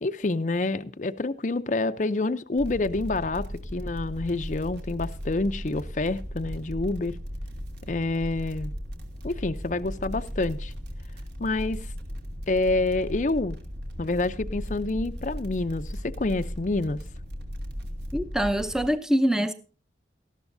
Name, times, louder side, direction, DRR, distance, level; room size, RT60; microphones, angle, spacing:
voice 1, 0.0-7.2 7.9-8.7 9.2-10.7 11.4-11.9 12.5-13.6 14.0-17.0, left 2 dB, 40° left, 0.5 m, -27 dB
sound 1, 2.6-18.9, equal, 65° right, 2.7 m, -37 dB
voice 2, 18.1-19.5, equal, 5° right, 0.6 m, -24 dB
19.0 x 13.5 x 2.6 m
head